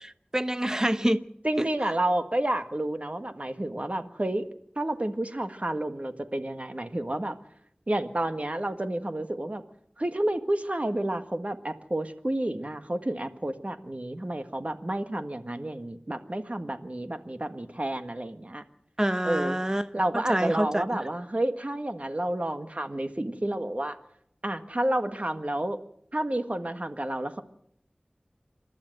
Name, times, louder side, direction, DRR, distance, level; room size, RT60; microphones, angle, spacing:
voice 1, 0.0-1.2 1.6-1.7 19.0-19.9 20.1-20.8, right 1 dB, 20° right, 0.9 m, -26 dB
voice 2, 1.4-4.4 4.8-7.4 7.9-9.6 10.0-18.6 19.2-24.0 24.4-25.8 26.1-27.4, right 1 dB, 45° right, 1.6 m, -30 dB
27.5 x 12.0 x 7.9 m
wide cardioid pair, 45°, 3 cm